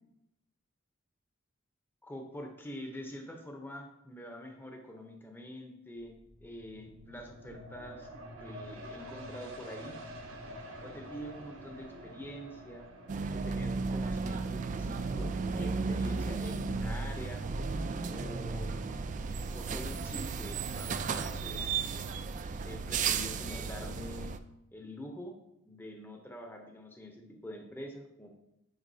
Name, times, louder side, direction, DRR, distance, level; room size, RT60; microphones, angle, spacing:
voice 1, 2.0-6.1 6.4-8.1 8.4-10.0 10.8-12.9 13.3-17.4 18.1-18.7 19.5-21.8 22.6-24.3 24.7-25.3 25.7-28.4, equal, 10° left, 2 dB, 0.7 m, -45 dB
sound 1, 6.0-19.2 19.7-19.8, equal, 85° right, 1.2 m, -49 dB
sound 2, 13.1-24.4, right 4 dB, 35° right, 0.3 m, -34 dB
9.0 x 5.0 x 2.7 m, 0.87 s
head